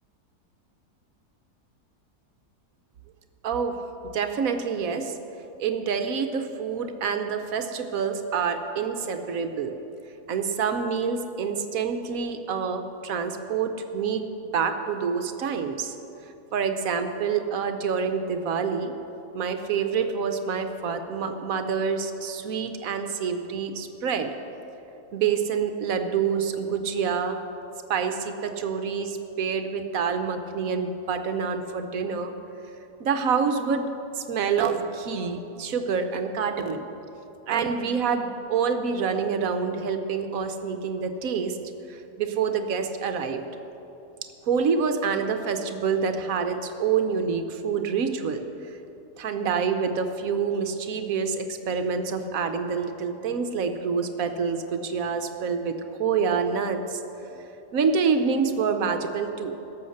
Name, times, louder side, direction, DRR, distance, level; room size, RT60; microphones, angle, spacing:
voice 1, 3.4-3.8 4.1-5.2 5.6-9.7 10.3-14.2 14.5-15.9 16.5-18.9 19.3-24.3 25.1-27.4 27.9-32.3 33.0-33.9 34.2-36.9 37.5-41.6 41.9-43.4 44.4-48.4 49.2-57.0 57.3-57.4 57.7-59.5, right 6 dB, 65° right, 7 dB, 1.1 m, -27 dB
16.5 x 7.1 x 6.4 m, 2.9 s
omnidirectional pair, 1.7 m